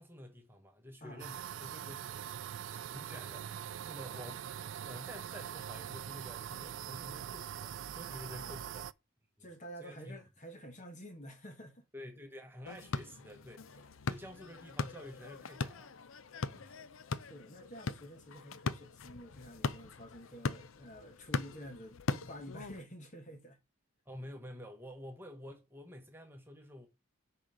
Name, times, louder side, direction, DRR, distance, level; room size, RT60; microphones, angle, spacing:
voice 1, 0.0-2.1 2.5-8.8 9.8-10.2 11.9-16.8 24.1-26.9, equal, 10° right, 1.3 m, -50 dB
sound 1, 1.2-8.9, right 9 dB, 65° right, 0.3 m, -43 dB
voice 2, 8.3-8.7 9.4-11.8 13.8-13.9 17.2-23.6, equal, 35° left, 1.4 m, -50 dB
sound 2, 12.7-22.8, left 4 dB, 80° left, 0.6 m, -40 dB
6.3 x 4.4 x 5.0 m
head